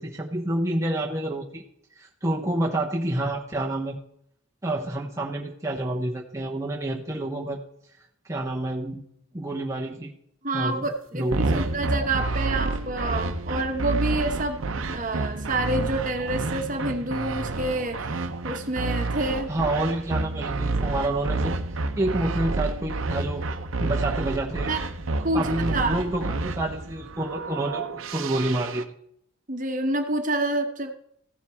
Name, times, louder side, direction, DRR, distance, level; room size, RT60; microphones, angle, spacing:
voice 1, 0.0-1.6 2.0-4.0 4.6-7.6 8.3-9.0 9.3-10.1 10.5-10.9 11.1-11.7 19.5-21.6 22.0-23.5 23.8-24.7 25.3-28.9, right 1 dB, 15° right, -2 dB, 0.8 m, -28 dB
voice 2, 10.4-19.5 24.7-24.8 25.2-26.0 29.5-30.9, right 2 dB, 40° right, 5 dB, 1.1 m, -28 dB
sound 1, 10.8-10.9 11.3-28.8, right 3 dB, 80° right, 0.7 m, -29 dB
15.0 x 7.4 x 3.5 m, 0.72 s
head